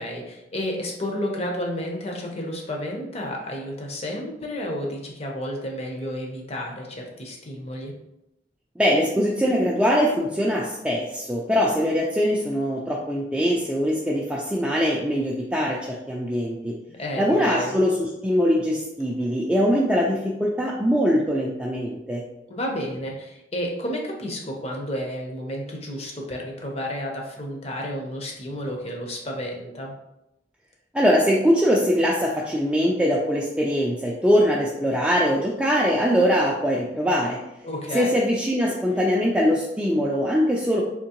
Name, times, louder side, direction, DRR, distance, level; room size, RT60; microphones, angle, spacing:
voice 1, 0.0-7.9 16.9-17.8 22.5-29.9 37.6-38.1, equal, 35° left, 0 dB, 0.7 m, -31 dB
voice 2, 8.8-16.7 17.2-22.2 30.9-37.4 37.9-40.8, equal, 5° right, -4 dB, 0.3 m, -22 dB
3.6 x 2.9 x 2.9 m, 0.88 s
head